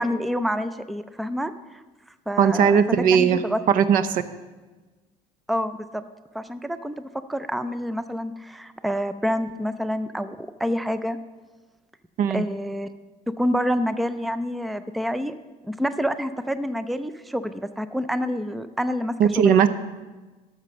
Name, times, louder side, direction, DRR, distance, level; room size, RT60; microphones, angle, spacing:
voice 1, 0.0-1.8 2.3-2.8 3.1-3.6 5.5-6.0 6.3-11.2 12.3-12.9 13.3-15.3 15.6-19.7, equal, ahead, 12 dB, 0.3 m, -28 dB
voice 2, 2.4-3.4 3.7-4.2 12.2-12.4 19.2-19.7, right 7 dB, 60° right, 13 dB, 0.7 m, -18 dB
12.5 x 6.7 x 6.1 m, 1.2 s
cardioid pair, 150°, 16 cm